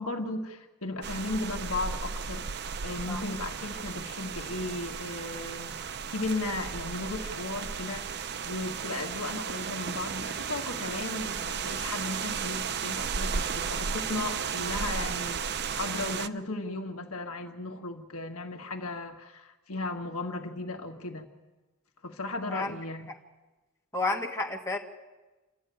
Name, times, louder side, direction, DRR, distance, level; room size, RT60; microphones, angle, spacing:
voice 1, 0.0-15.5 15.7-21.3 22.0-23.1, left 2 dB, 70° left, 3 dB, 1.8 m, -36 dB
sound 1, 1.0-16.3, right 6 dB, 50° right, 0.7 m, -34 dB
voice 2, 22.5-22.8 23.9-24.8, left 2 dB, 15° left, 0 dB, 2.1 m, -31 dB
27.5 x 13.0 x 9.3 m, 1.2 s
head